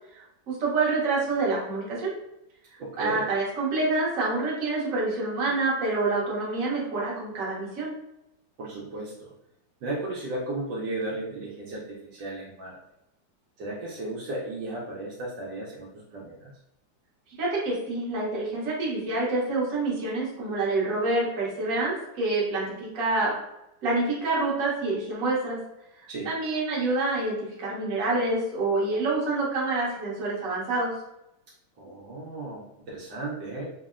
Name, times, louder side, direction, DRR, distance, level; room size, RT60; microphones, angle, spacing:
voice 1, 0.1-2.1 3.0-7.9 17.4-23.3 23.8-25.6 26.0-30.9, right 2 dB, 55° right, -5 dB, 1.2 m, -27 dB
voice 2, 2.8-3.3 8.6-9.3 9.8-12.8 13.6-16.5 26.1-26.3 31.8-33.7, right 2 dB, 75° right, -4 dB, 1.2 m, -35 dB
3.5 x 2.0 x 2.4 m, 0.85 s
omnidirectional pair, 2.0 m